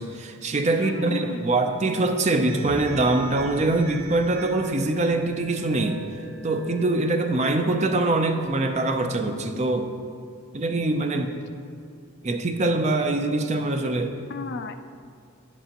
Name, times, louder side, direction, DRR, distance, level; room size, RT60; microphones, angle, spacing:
voice 1, 0.0-6.0 6.4-9.9 10.5-11.3 12.2-14.1, right 2 dB, 30° right, 5 dB, 0.4 m, -23 dB
voice 2, 0.7-1.5 14.3-14.8, left 4 dB, 50° left, 9 dB, 0.4 m, -33 dB
sound 1, 2.4-6.7, equal, 25° left, 1.1 m, -41 dB
sound 2, 2.5-8.5, right 3 dB, 80° right, 0.9 m, -42 dB
10.0 x 8.0 x 2.9 m, 2.3 s
head